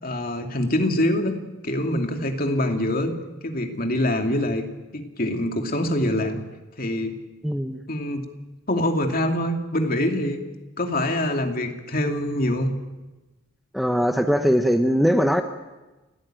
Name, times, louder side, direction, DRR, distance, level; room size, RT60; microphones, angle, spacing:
voice 1, 0.0-1.4 1.6-3.1 3.4-4.6 4.9-6.4 6.8-7.1 7.9-8.2 8.7-10.4 10.8-12.7, left 1 dB, 45° left, 4 dB, 2.6 m, -24 dB
voice 2, 7.4-7.8 13.7-15.4, equal, ahead, 6 dB, 1.0 m, -20 dB
29.5 x 15.0 x 9.1 m, 1.1 s
head